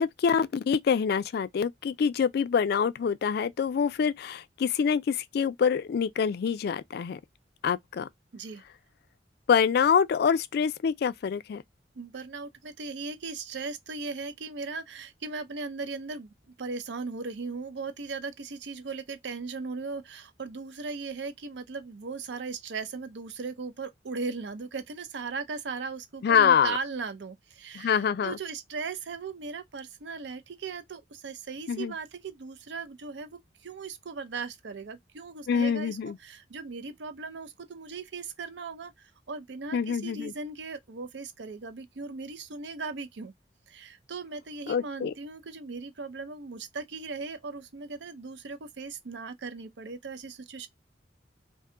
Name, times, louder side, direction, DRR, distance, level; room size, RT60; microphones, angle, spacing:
voice 1, 0.0-7.2 7.6-8.1 9.5-11.6 26.2-26.8 27.7-28.4 31.7-31.9 35.5-36.2 39.7-40.3 44.7-45.1, left 7 dB, 60° left, 0.3 m, -25 dB
voice 2, 12.0-43.3 43.7-50.7, right 4 dB, 70° right, 0.5 m, -38 dB
2.6 x 2.2 x 3.7 m
head